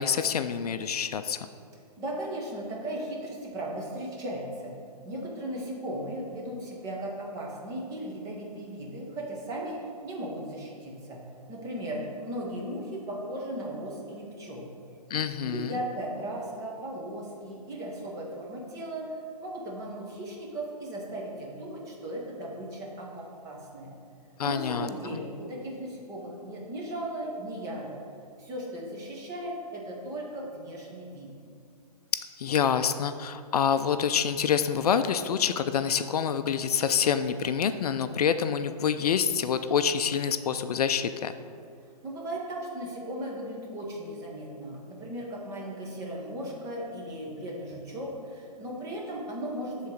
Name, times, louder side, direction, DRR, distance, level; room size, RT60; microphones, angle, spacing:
voice 1, 0.0-1.4 15.1-15.7 24.4-24.9 32.1-41.3, left 7 dB, 65° left, 10 dB, 0.4 m, -27 dB
voice 2, 2.0-4.7 5.0-11.2 11.5-14.7 15.4-23.9 24.4-28.0 28.4-31.3 41.8-49.9, right 1 dB, 15° right, -2 dB, 1.1 m, -37 dB
8.1 x 3.9 x 6.4 m, 2.4 s
hypercardioid pair, 155°, 21 cm